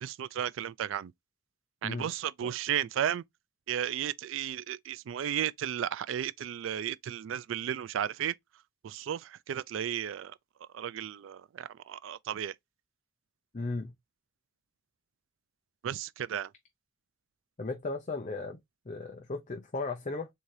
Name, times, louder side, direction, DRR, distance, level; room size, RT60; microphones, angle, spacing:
voice 1, 0.0-1.1 1.8-3.2 3.7-8.3 8.8-10.3 10.7-12.5 15.8-16.5, right 10 dB, 75° right, 0.3 m, -34 dB
voice 2, 13.5-13.9 17.6-18.6 18.9-20.3, left 3 dB, 35° left, 0.6 m, -35 dB
3.7 x 2.8 x 4.7 m
head